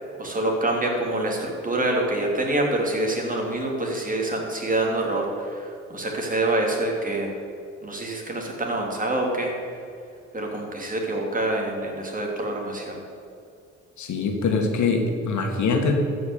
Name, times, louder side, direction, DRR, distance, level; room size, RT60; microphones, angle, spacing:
voice 1, 0.2-7.3 7.8-9.5 10.3-13.0, right 1 dB, 25° right, 0 dB, 3.0 m, -26 dB
voice 2, 14.0-15.9, left 4 dB, 70° left, 3 dB, 1.9 m, -23 dB
13.0 x 5.8 x 8.7 m, 2.4 s
cardioid pair, 90°, 30 cm